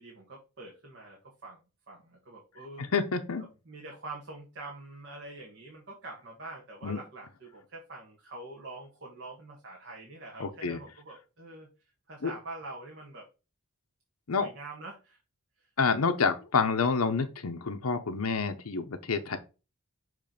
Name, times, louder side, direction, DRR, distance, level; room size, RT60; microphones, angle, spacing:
voice 1, 0.0-2.9 3.6-11.7 12.1-13.3 14.4-15.2 15.6-15.7, right 2 dB, 55° right, 1.6 m, -45 dB
voice 2, 2.9-3.4 6.8-7.0 10.4-10.8 12.2-12.3 14.3-14.5 15.8-19.4, left 5 dB, 80° left, 0.8 m, -28 dB
6.7 x 3.2 x 5.1 m
head